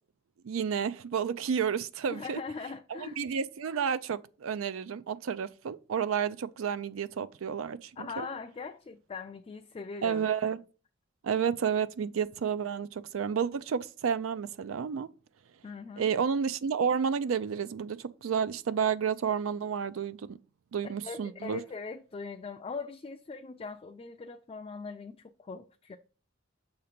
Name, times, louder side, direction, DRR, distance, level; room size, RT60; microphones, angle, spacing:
voice 1, 0.4-2.4 2.9-8.3 10.0-10.6 11.2-15.1 16.0-20.4 20.7-21.6, right 7 dB, 90° right, 0.4 m, -31 dB
voice 2, 2.1-3.2 8.0-10.3 15.6-16.0 20.8-26.0, left 4 dB, 30° left, 0.3 m, -41 dB
6.6 x 2.9 x 5.0 m
head